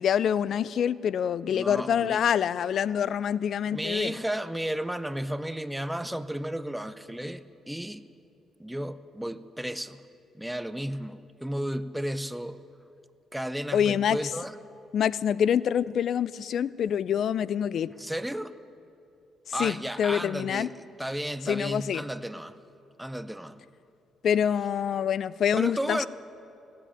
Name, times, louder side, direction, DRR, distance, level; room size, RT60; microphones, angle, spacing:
voice 1, 0.0-4.1 13.7-14.2 14.9-17.9 19.6-20.7 21.5-22.0 24.2-26.1, left 8 dB, 65° left, 19 dB, 0.3 m, -26 dB
voice 2, 1.5-2.2 3.7-8.0 8.6-10.0 10.3-12.6 13.3-14.6 17.9-18.6 19.5-22.6 23.0-23.6 25.5-26.1, right 1 dB, 5° right, 14 dB, 0.5 m, -33 dB
15.5 x 7.5 x 10.0 m, 2.7 s
cardioid pair, 90°, 0 cm